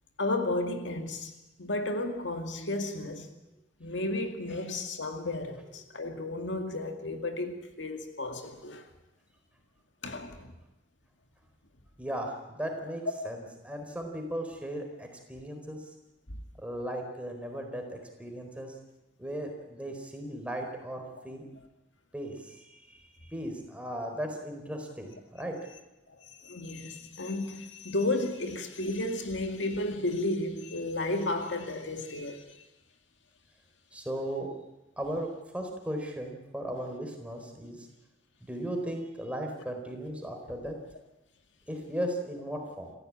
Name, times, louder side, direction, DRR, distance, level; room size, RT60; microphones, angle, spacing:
voice 1, 0.2-1.3 1.6-3.3 3.8-8.8 10.0-10.5 13.2-13.3 16.3-16.4 21.2-21.3 26.1-32.4, left 2 dB, 70° left, 2.2 m, -33 dB
voice 2, 12.0-15.8 16.6-18.7 19.2-21.5 22.1-25.6 33.9-34.5 35.0-37.9 38.4-40.8 41.7-42.9, right 1 dB, 5° right, 4.2 m, -37 dB
27.5 x 15.0 x 8.8 m
head